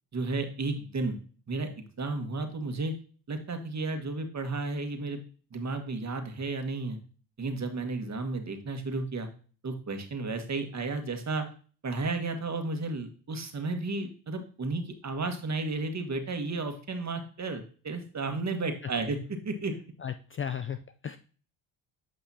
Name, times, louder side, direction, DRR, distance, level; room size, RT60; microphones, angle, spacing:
voice 1, 0.1-1.2 1.5-2.9 3.3-5.2 5.5-7.0 7.4-9.3 9.6-11.5 11.8-19.2 19.4-19.7, right 3 dB, 35° right, 6 dB, 1.6 m, -33 dB
voice 2, 20.0-21.2, left 8 dB, 30° left, 10 dB, 0.4 m, -35 dB
8.3 x 5.5 x 2.8 m, 0.39 s
hypercardioid pair, 55°, 47 cm